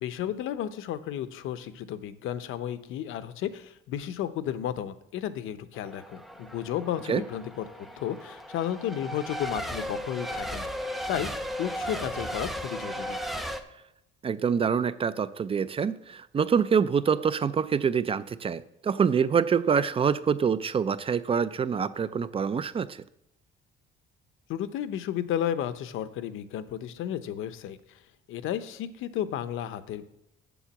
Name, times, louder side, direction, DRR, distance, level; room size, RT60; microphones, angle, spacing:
voice 1, 0.0-10.7 11.1-13.2 24.5-28.0 28.3-30.0, left 10 dB, 75° left, 12 dB, 0.8 m, -33 dB
Race car auto racing / Accelerating revving vroom / Mechanisms, 5.7-13.6, equal, ahead, 0.7 m, -36 dB
voice 2, 14.2-23.0, right 6 dB, 25° right, 15 dB, 0.4 m, -26 dB
7.1 x 6.7 x 7.2 m, 0.82 s
cardioid pair, 145°, 21 cm